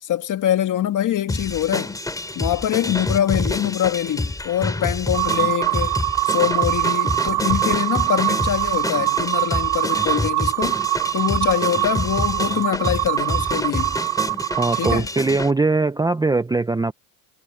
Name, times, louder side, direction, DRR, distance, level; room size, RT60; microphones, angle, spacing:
voice 1, 0.0-2.0 2.3-6.0 6.2-10.8 11.1-14.0 14.7-15.1, left 11 dB, 40° left, 2.0 m, -24 dB
sound 1, 1.3-15.5, left 2 dB, 10° left, 3.6 m, -28 dB
sound 2, 5.1-15.0, right 22 dB, 60° right, 2.6 m, -23 dB
voice 2, 14.6-16.9, right 3 dB, 10° right, 0.8 m, -21 dB
supercardioid pair, 115°, 46 cm